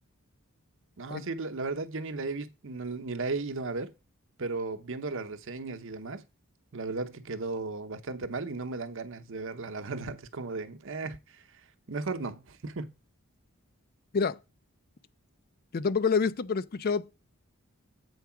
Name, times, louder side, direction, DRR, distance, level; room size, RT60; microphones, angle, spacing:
voice 1, 1.0-3.9 4.4-6.2 6.7-11.4 11.9-13.0, right 3 dB, 65° right, 0.8 m, -35 dB
voice 2, 15.7-17.2, left 5 dB, 45° left, 0.4 m, -27 dB
8.0 x 4.7 x 5.8 m
head